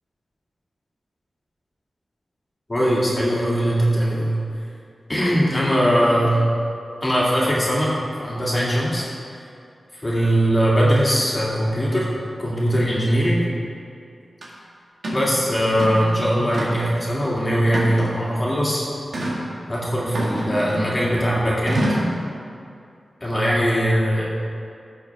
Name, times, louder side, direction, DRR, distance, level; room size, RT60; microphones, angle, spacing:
voice 1, 2.7-4.3 5.1-6.4 7.0-7.9 8.2-9.1 10.0-12.1 12.4-13.5 15.1-18.8 19.7-21.9 23.2-24.3, equal, 20° left, -6 dB, 2.1 m, -20 dB
sound 1, 14.4-14.5 15.0-15.3 15.7-16.1 16.5-17.0 17.7-18.3 19.1-19.4 20.1-21.0 21.7-22.2, right 1 dB, 70° right, 1.8 m, -26 dB
15.0 x 6.4 x 3.5 m, 2.5 s
wide cardioid pair, 130°, 0 cm